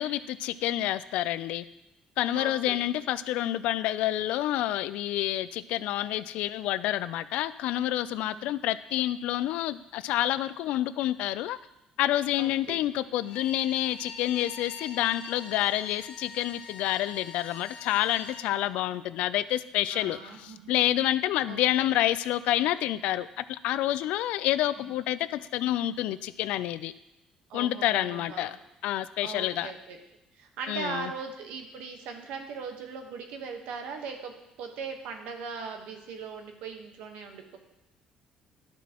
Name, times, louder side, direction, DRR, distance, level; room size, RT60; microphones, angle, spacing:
voice 1, 0.0-1.7 2.2-11.6 12.0-26.9 27.5-28.6 28.8-29.7 30.7-31.1, left 13 dB, 80° left, 15 dB, 0.3 m, -28 dB
voice 2, 2.3-2.9 5.8-6.0 8.3-8.5 12.4-12.8 19.9-20.7 21.4-21.9 24.8-24.9 27.5-28.6 29.2-30.0 30.3-34.3 34.6-37.6, right 5 dB, 85° right, 4 dB, 1.2 m, -40 dB
Bowed string instrument, 13.2-18.5, left 6 dB, 65° left, 0.9 m, -45 dB
11.5 x 6.1 x 2.9 m, 0.91 s
cardioid pair, 145°, 2 cm